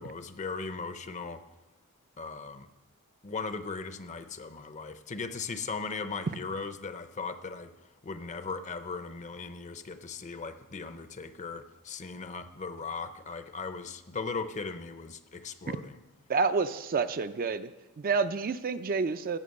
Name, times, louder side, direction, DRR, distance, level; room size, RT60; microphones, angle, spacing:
voice 1, 0.0-1.4 2.2-2.7 3.2-7.7 8.0-16.0, left 4 dB, 35° left, 11 dB, 0.6 m, -38 dB
voice 2, 16.3-17.7 18.0-19.4, right 4 dB, 40° right, 11 dB, 0.4 m, -29 dB
16.5 x 5.9 x 6.4 m, 1.1 s
head